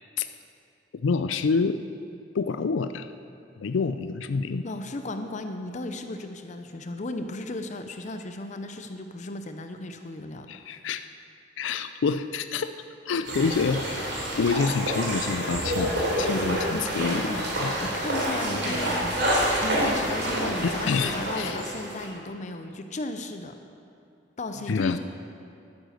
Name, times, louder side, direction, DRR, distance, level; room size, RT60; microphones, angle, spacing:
voice 1, 1.0-1.8 2.3-3.1 3.6-4.6 10.5-11.0 11.6-12.7 13.1-14.0 14.4-17.2 17.6-17.7 20.6-21.6 24.7-25.0, left 5 dB, 90° left, 10 dB, 0.4 m, -27 dB
voice 2, 4.6-10.5 16.7-17.5 17.8-23.5 24.4-25.0, left 2 dB, 40° left, 7 dB, 0.6 m, -35 dB
sound 1, 13.2-22.1, equal, 65° right, 3.2 m, -28 dB
12.0 x 9.8 x 6.5 m, 2.5 s
head